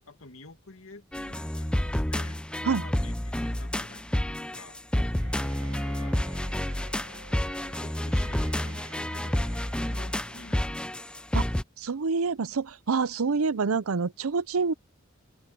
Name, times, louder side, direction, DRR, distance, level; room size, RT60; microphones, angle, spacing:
voice 1, 0.0-4.8 5.4-6.5 7.6-10.9, left 3 dB, 70° left, 2.3 m, -50 dB
sound 1, 1.1-11.6, left 1 dB, 5° left, 0.5 m, -29 dB
Bowed string instrument, 5.2-11.2, right 3 dB, 65° right, 4.6 m, -51 dB
voice 2, 11.8-14.7, right 4 dB, 90° right, 0.6 m, -27 dB
open air
head